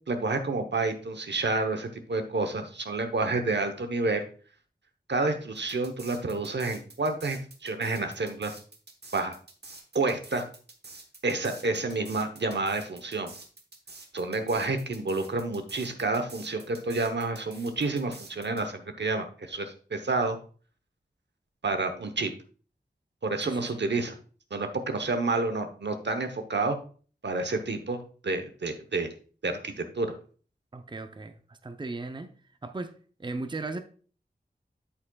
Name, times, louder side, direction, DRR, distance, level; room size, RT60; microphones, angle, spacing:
voice 1, 0.1-4.2 5.1-8.5 9.1-9.3 9.9-10.4 11.2-13.3 14.1-20.4 21.6-22.3 23.2-24.2 24.5-26.8 27.2-29.1 29.4-30.1, right 3 dB, 85° right, 0.9 m, -29 dB
sound 1, 5.6-18.6, right 3 dB, 70° right, 1.1 m, -48 dB
voice 2, 23.4-23.8 30.7-32.3 32.6-32.9 33.2-33.8, right 3 dB, 25° right, 0.6 m, -37 dB
8.5 x 7.6 x 2.3 m
wide cardioid pair, 65°, 18 cm